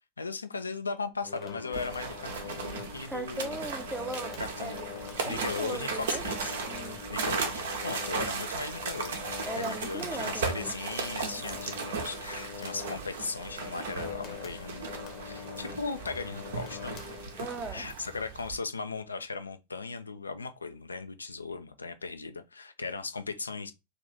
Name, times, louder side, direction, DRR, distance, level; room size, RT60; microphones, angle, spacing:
voice 1, 0.2-3.6 4.4-4.8 5.2-6.6 7.1-14.9 15.2-17.0 17.3-23.7, left 4 dB, 75° left, 0.3 m, -37 dB
sound 1, 1.2-17.7, left 7 dB, 35° left, 0.7 m, -43 dB
sound 2, 1.7-18.6, right 5 dB, 60° right, 0.6 m, -37 dB
voice 2, 3.1-4.9 5.2-6.2 6.7-7.3 9.5-10.7 17.4-17.8, right 2 dB, 10° right, 0.5 m, -38 dB
2.5 x 2.5 x 3.4 m
figure-of-eight pair, 90°, 0 cm